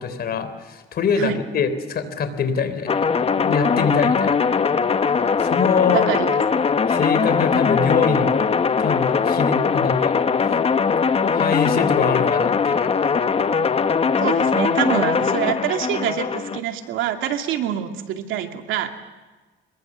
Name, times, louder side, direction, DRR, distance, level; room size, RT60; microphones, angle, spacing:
voice 1, 0.0-3.1 3.4-4.5 5.4-6.0 6.9-8.5 8.8-10.1 10.5-10.6 11.3-12.9, left 6 dB, 50° left, 11 dB, 3.6 m, -24 dB
sound 1, 2.9-16.6, left 5 dB, 30° left, 1.1 m, -20 dB
voice 2, 5.9-6.4 14.2-19.0, right 10 dB, 90° right, 5 dB, 2.4 m, -25 dB
25.5 x 22.0 x 7.4 m, 1.3 s
cardioid pair, 120°, 20 cm